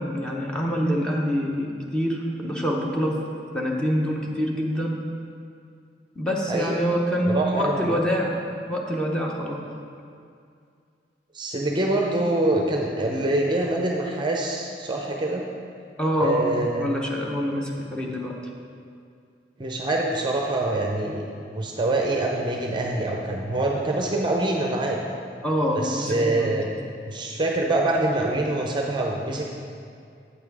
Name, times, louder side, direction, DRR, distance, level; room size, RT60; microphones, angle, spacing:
voice 1, 0.0-3.1 3.5-5.0 6.2-9.6 16.0-18.3 25.4-26.6, equal, 5° left, -2 dB, 0.8 m, -26 dB
voice 2, 6.5-6.8 7.3-8.0 11.3-15.4 16.2-16.9 18.0-18.1 19.6-21.3 21.5-25.0 25.7-26.7 27.0-29.5, right 2 dB, 25° right, 0 dB, 0.6 m, -25 dB
8.1 x 5.8 x 4.7 m, 2.3 s
head